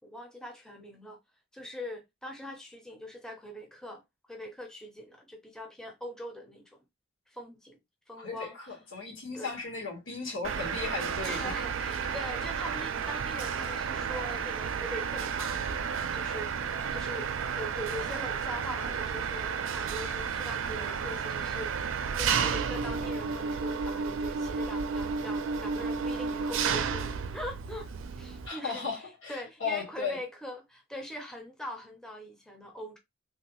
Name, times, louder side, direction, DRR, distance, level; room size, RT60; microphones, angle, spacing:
voice 1, 0.0-1.2 1.5-4.0 4.3-6.8 7.3-7.8 8.1-8.6 9.3-9.5 11.2-15.8 16.1-16.6 16.9-21.9 22.2-27.1 27.3-33.0, equal, 5° left, 0.5 m, -42 dB
voice 2, 8.2-11.5 28.4-30.2, left 4 dB, 85° left, 1.4 m, -36 dB
Mechanisms, 10.4-28.5, right 6 dB, 90° right, 0.4 m, -32 dB
3.3 x 2.3 x 2.9 m
head